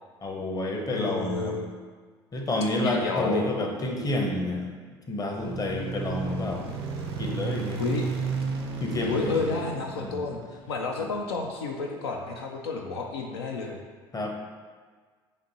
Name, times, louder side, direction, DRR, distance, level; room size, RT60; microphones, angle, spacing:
voice 1, 0.2-1.6 2.3-4.7 5.1-6.6 7.2-7.8 8.8-9.5 10.0-10.2 11.0-11.1 14.1-14.4, left 1 dB, 30° left, 1 dB, 0.7 m, -29 dB
voice 2, 0.9-1.7 2.8-3.5 7.8-8.0 9.1-10.4 10.7-13.8, left 4 dB, 85° left, 1 dB, 0.4 m, -30 dB
sound 1, 5.4-10.8, right 4 dB, 80° right, 0.5 m, -33 dB
5.1 x 2.6 x 2.8 m, 1.5 s
hypercardioid pair, 65°, 13 cm